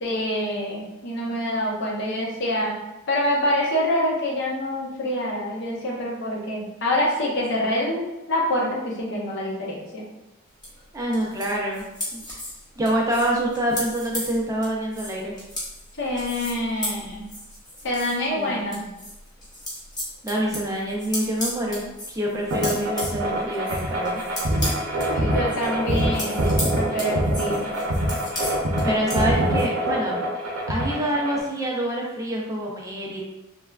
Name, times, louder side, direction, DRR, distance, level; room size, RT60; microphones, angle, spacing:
voice 1, 0.0-2.8 3.1-8.0 8.3-10.0 16.0-17.3 17.8-18.8 25.1-27.7, left 1 dB, 60° left, -3 dB, 0.7 m, -26 dB
sound 1, 10.6-18.3 18.6-29.6, left 1 dB, 20° left, 0.9 m, -35 dB
voice 2, 10.9-11.8 12.1-12.2 12.8-15.4 18.3-18.9 20.2-24.2 28.3-28.5 28.8-30.2 30.7-33.2, right 1 dB, 15° right, -3 dB, 0.4 m, -26 dB
sound 2, 22.5-31.4, right 1 dB, 90° right, 0.7 m, -24 dB
3.2 x 2.2 x 2.3 m, 0.98 s
head